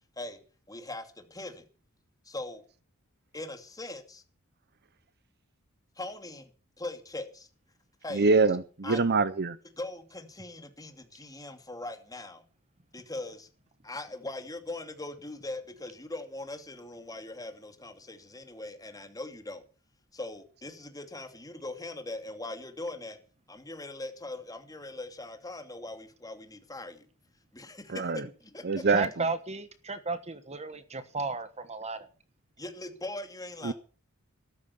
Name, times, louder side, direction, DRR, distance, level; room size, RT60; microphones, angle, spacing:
voice 1, 0.7-1.7 2.2-2.6 3.3-4.2 6.0-6.5 6.8-7.5 8.0-8.3 8.8-9.1 9.8-12.4 12.9-13.5 13.8-19.6 20.1-23.2 23.5-27.1 27.5-28.1 28.4-28.9 32.6-33.7, left 2 dB, 15° left, 2.7 m, -40 dB
voice 2, 8.1-9.6 27.9-28.2 28.7-29.0 33.7-33.8, right 4 dB, 50° right, 0.8 m, -24 dB
voice 3, 28.9-32.1, right 3 dB, 30° right, 1.3 m, -34 dB
14.5 x 13.0 x 7.0 m
head